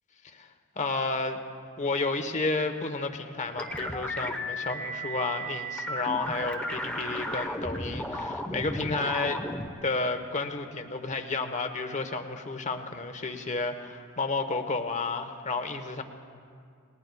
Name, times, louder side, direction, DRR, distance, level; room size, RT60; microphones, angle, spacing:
voice 1, 0.8-1.4 1.8-9.4 9.8-16.0, left 3 dB, 35° left, 7 dB, 1.0 m, -31 dB
sound 1, 3.6-9.7, equal, 5° left, 0.9 m, -34 dB
28.5 x 19.5 x 2.3 m, 2.2 s
head